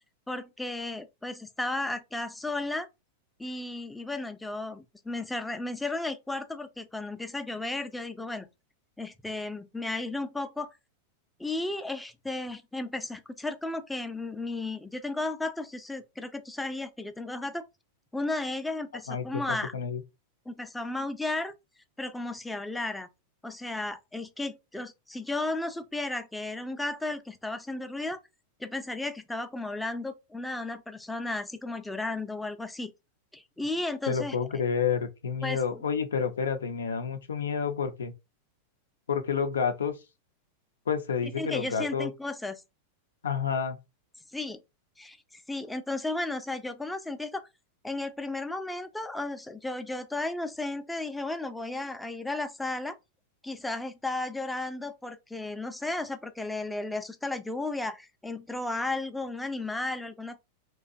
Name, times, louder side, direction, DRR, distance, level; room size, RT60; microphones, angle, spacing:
voice 1, 0.3-2.9 3.4-8.5 9.0-10.7 11.4-17.6 18.1-19.7 20.5-21.5 22.0-23.1 23.4-28.2 28.6-32.9 33.3-34.4 35.4-35.6 41.2-42.6 44.3-44.6 45.0-47.5 47.8-53.0 53.4-60.4, left 2 dB, 5° left, 0.4 m, -34 dB
voice 2, 19.1-19.4 19.7-20.0 34.1-38.1 39.1-40.0 40.9-42.1 43.2-43.8, left 6 dB, 80° left, 0.4 m, -29 dB
2.6 x 2.2 x 2.5 m
hypercardioid pair, 100°, 0 cm